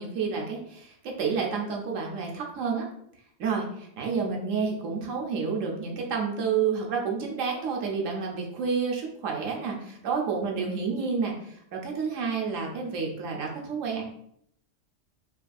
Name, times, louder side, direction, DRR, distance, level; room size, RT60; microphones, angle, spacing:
voice 1, 0.0-2.9 3.4-14.0, right 5 dB, 90° right, 0 dB, 1.1 m, -30 dB
5.4 x 2.6 x 2.4 m, 0.70 s
omnidirectional pair, 1.3 m